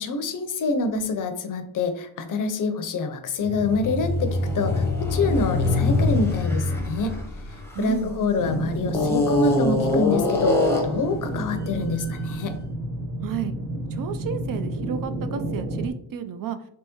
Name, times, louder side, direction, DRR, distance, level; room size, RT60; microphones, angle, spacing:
voice 1, 0.0-7.2 7.8-12.5, left 3 dB, 50° left, 7 dB, 0.6 m, -26 dB
sound 1, 3.4-8.3 8.9-11.1, left 2 dB, 5° left, 0.7 m, -24 dB
voice 2, 7.7-8.1 13.2-13.6 13.9-16.6, right 8 dB, 55° right, 10 dB, 0.4 m, -31 dB
sound 2, 8.4-15.9, right 2 dB, 80° right, 0.9 m, -31 dB
3.5 x 3.1 x 2.9 m, 0.65 s
cardioid pair, 120°, 42 cm